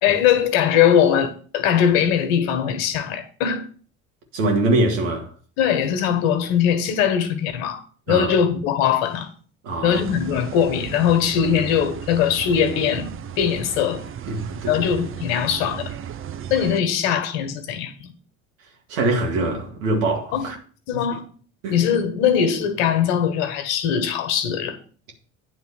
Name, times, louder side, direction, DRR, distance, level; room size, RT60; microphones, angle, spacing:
voice 1, 0.0-3.6 5.6-9.3 9.8-13.1 13.4-14.0 14.7-15.9 16.5-18.1 20.3-20.5 20.9-21.2 21.7-24.8, left 8 dB, 65° left, 1.5 m, -21 dB
voice 2, 4.3-5.3 8.1-8.3 9.6-10.0 14.2-14.9 18.9-20.6 20.9-21.0 21.6-21.8, right 2 dB, 80° right, 2.1 m, -23 dB
sound 1, 9.9-16.8, right 9 dB, 35° right, 0.6 m, -35 dB
9.3 x 3.8 x 7.0 m
hypercardioid pair, 65°, 39 cm